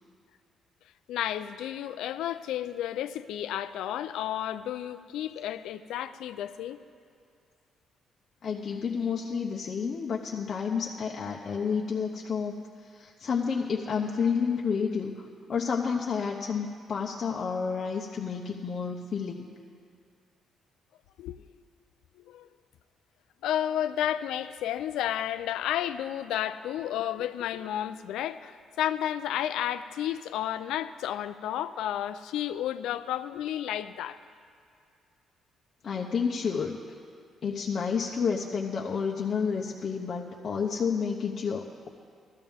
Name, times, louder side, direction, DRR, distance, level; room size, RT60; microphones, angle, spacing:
voice 1, 1.1-6.8 21.2-21.4 22.3-22.5 23.4-34.2, left 11 dB, 85° left, 12 dB, 0.4 m, -32 dB
voice 2, 8.4-19.5 35.8-36.8 37.4-41.9, left 6 dB, 50° left, -1 dB, 0.8 m, -30 dB
16.5 x 13.5 x 3.6 m, 2.3 s
cardioid pair, 90°, 0 cm